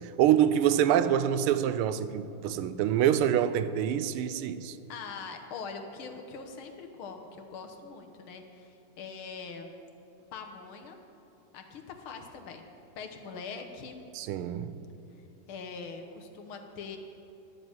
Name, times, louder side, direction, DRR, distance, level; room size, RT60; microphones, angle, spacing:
voice 1, 0.0-4.8 14.1-14.7, right 10 dB, 85° right, 13 dB, 1.5 m, -26 dB
voice 2, 4.9-9.8 10.3-11.0 11.5-12.7 13.0-14.0 15.5-17.0, left 5 dB, 75° left, 5 dB, 1.8 m, -42 dB
11.0 x 7.3 x 8.7 m, 2.9 s
omnidirectional pair, 2.4 m